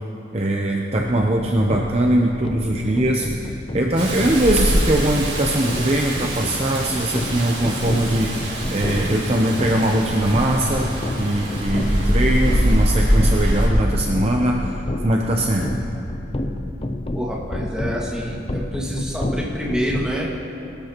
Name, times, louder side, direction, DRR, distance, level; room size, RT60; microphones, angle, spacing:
voice 1, 0.3-14.8 15.0-15.7, right 1 dB, 30° right, 0 dB, 0.7 m, -21 dB
sound 1, 1.0-20.1, left 1 dB, 30° left, 0.6 m, -30 dB
Rain, 4.0-13.7, equal, 65° right, 3.9 m, -23 dB
voice 2, 17.1-20.3, equal, 5° right, -5 dB, 1.8 m, -28 dB
22.5 x 12.5 x 3.0 m, 2.7 s
head